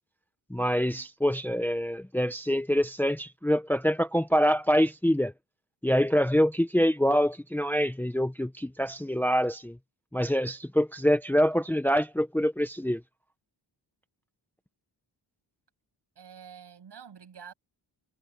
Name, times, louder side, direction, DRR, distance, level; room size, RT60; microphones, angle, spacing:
voice 1, 0.5-5.3 5.8-9.8 10.1-13.0, equal, 5° left, 0.8 m, -25 dB
voice 2, 16.2-17.5, right 7 dB, 65° right, 7.4 m, -47 dB
wide cardioid pair, 175°, 44 cm